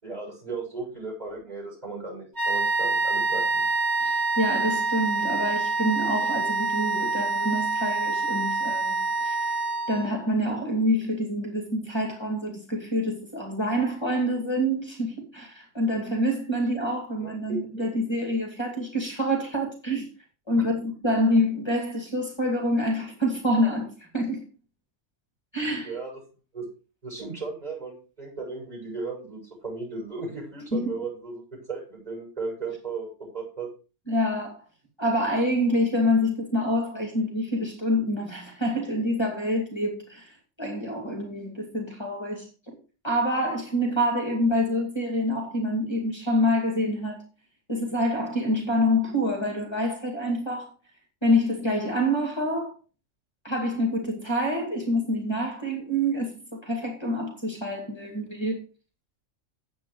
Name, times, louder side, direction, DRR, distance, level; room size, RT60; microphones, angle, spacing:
voice 1, 0.0-3.6 17.2-17.6 25.9-26.1 26.5-26.7 27.0-33.7, right 4 dB, 30° right, 7.0 m, -35 dB
sound 1, 2.4-10.2, right 3 dB, 55° right, 2.7 m, -26 dB
voice 2, 4.0-9.4 9.9-20.1 20.5-24.4 25.5-26.0 30.7-30.9 34.1-34.6 35.0-40.3 40.6-42.7 43.0-47.2 47.7-50.7 51.2-52.7 53.4-58.6, equal, 20° left, 2.6 m, -26 dB
9.9 x 8.2 x 4.9 m
omnidirectional pair, 1.3 m